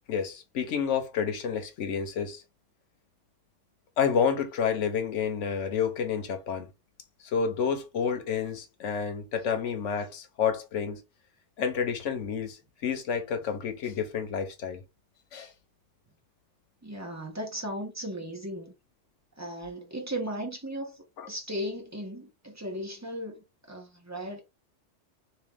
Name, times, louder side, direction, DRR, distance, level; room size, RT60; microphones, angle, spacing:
voice 1, 0.1-2.4 4.0-6.7 7.2-11.0 11.6-14.8 15.3-15.5 21.2-21.3, left 7 dB, 75° left, 1.2 m, -29 dB
voice 2, 16.8-18.7 19.4-24.4, equal, 15° right, 1.1 m, -36 dB
3.1 x 3.1 x 3.6 m
omnidirectional pair, 1.3 m